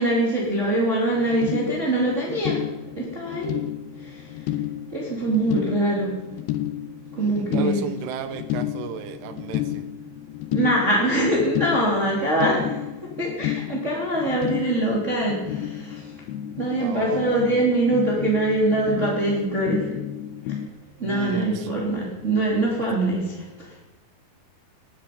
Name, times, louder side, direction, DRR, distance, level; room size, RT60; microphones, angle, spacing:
voice 1, 0.0-2.6 2.9-3.5 4.0-4.6 4.9-6.1 7.1-7.8 10.5-12.8 13.2-16.1 16.6-19.9 20.4-20.5 21.0-23.8, right 1 dB, 20° right, -4 dB, 2.6 m, -23 dB
sound 1, 1.1-20.7, left 12 dB, 80° left, 2.5 m, -32 dB
voice 2, 7.1-9.9 16.8-17.6 21.0-21.7, right 8 dB, 85° right, 9 dB, 3.2 m, -34 dB
21.0 x 10.0 x 5.3 m, 1.1 s
omnidirectional pair, 4.8 m